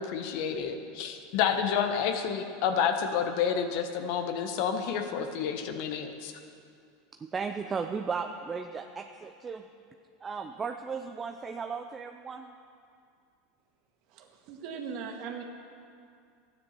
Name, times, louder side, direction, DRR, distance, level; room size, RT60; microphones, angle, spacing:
voice 1, 0.0-6.3, left 7 dB, 60° left, 6 dB, 1.2 m, -29 dB
voice 2, 7.1-9.7 10.2-12.5, right 5 dB, 25° right, 6 dB, 0.6 m, -35 dB
voice 3, 14.1-15.4, right 6 dB, 60° right, 3 dB, 1.8 m, -39 dB
13.0 x 9.8 x 6.8 m, 2.4 s
hypercardioid pair, 100°, 0 cm